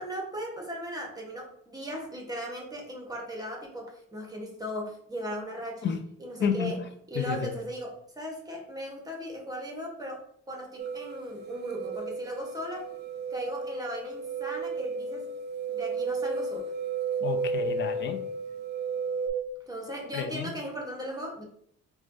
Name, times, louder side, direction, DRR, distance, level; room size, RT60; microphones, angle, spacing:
voice 1, 0.0-6.8 7.1-12.9 13.3-15.3 15.7-16.6 19.7-21.4, equal, 15° right, -1 dB, 0.9 m, -37 dB
voice 2, 6.4-6.8 7.2-7.6 17.2-18.2 20.1-20.5, left 7 dB, 40° left, 8 dB, 0.4 m, -30 dB
sound 1, 10.8-19.3, right 3 dB, 35° right, 0.4 m, -33 dB
3.2 x 2.3 x 2.5 m, 0.68 s
cardioid pair, 90°, 30 cm